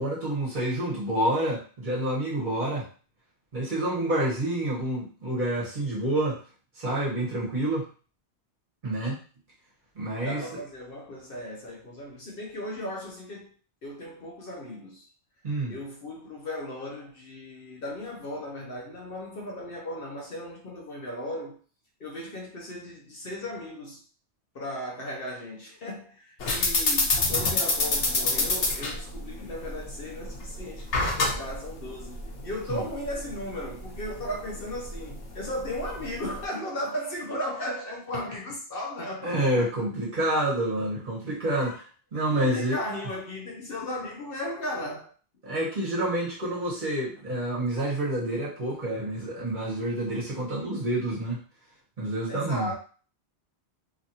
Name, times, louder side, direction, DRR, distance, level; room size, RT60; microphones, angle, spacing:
voice 1, 0.0-2.9 3.5-6.4 6.7-7.8 8.8-9.2 9.9-10.4 15.4-15.8 26.5-26.7 32.7-32.8 39.2-41.7 42.1-42.8 45.4-51.4 52.0-52.7, right 1 dB, 45° right, 1.3 m, -28 dB
voice 2, 10.2-13.5 13.8-15.1 15.7-21.5 22.0-24.0 24.5-39.7 41.6-41.8 42.3-45.1 52.3-52.7, left 1 dB, 60° left, 0.9 m, -36 dB
sound 1, 26.4-36.4, left 3 dB, 90° left, 1.1 m, -28 dB
3.0 x 2.5 x 2.8 m
omnidirectional pair, 1.1 m